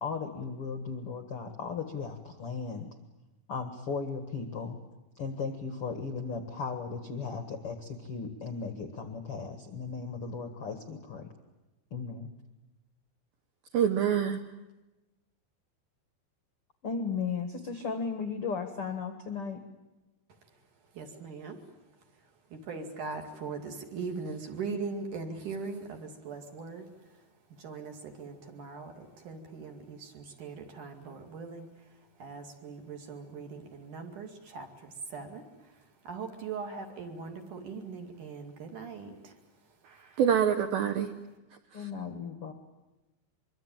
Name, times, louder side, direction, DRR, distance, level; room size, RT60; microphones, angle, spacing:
voice 1, 0.0-2.9 3.5-4.8 5.2-11.3 11.9-12.3 16.8-19.6 41.7-42.5, left 5 dB, 70° left, 7 dB, 1.3 m, -36 dB
voice 2, 13.7-14.4 39.9-41.1 41.7-41.9, right 8 dB, 75° right, 8 dB, 2.2 m, -26 dB
voice 3, 20.9-21.6 22.5-26.9 27.6-31.7 32.2-39.4, right 4 dB, 50° right, 4 dB, 3.3 m, -40 dB
25.0 x 24.0 x 9.0 m, 1.1 s
omnidirectional pair, 5.4 m